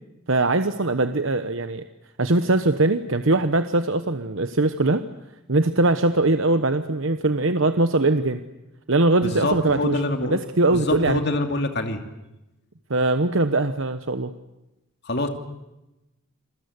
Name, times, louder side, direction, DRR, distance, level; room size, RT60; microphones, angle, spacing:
voice 1, 0.3-1.8 2.2-5.0 5.5-8.4 8.9-11.2 12.9-14.3, right 2 dB, 70° right, 9 dB, 1.1 m, -21 dB
voice 2, 9.2-10.4 10.7-12.0 15.0-15.3, left 1 dB, 50° left, 5 dB, 2.8 m, -25 dB
28.5 x 21.5 x 8.2 m, 0.95 s
head